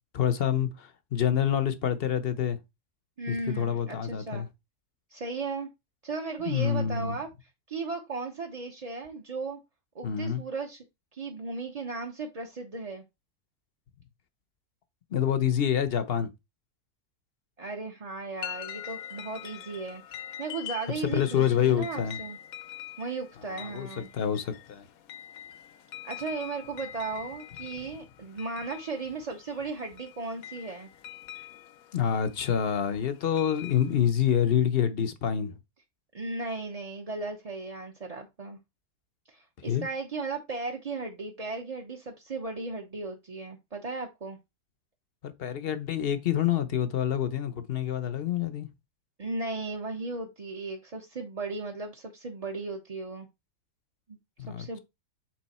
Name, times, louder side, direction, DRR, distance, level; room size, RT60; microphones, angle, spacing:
voice 1, 0.1-2.6 3.3-4.5 6.5-7.2 10.0-10.4 15.1-16.3 21.1-22.2 23.5-24.9 31.9-35.6 39.6-39.8 45.2-48.7 54.4-54.8, left 9 dB, 50° left, 0.7 m, -27 dB
voice 2, 3.2-4.5 5.1-5.7 6.0-7.3 7.7-9.6 9.9-10.8 11.1-13.0 17.6-22.4 23.0-24.1 26.0-30.9 36.1-38.6 39.3-44.4 49.2-53.3 54.1-54.2 54.5-54.8, right 3 dB, 35° right, 0.7 m, -36 dB
sound 1, 18.4-34.1, left 11 dB, 70° left, 1.1 m, -44 dB
7.6 x 3.6 x 4.2 m
omnidirectional pair, 1.6 m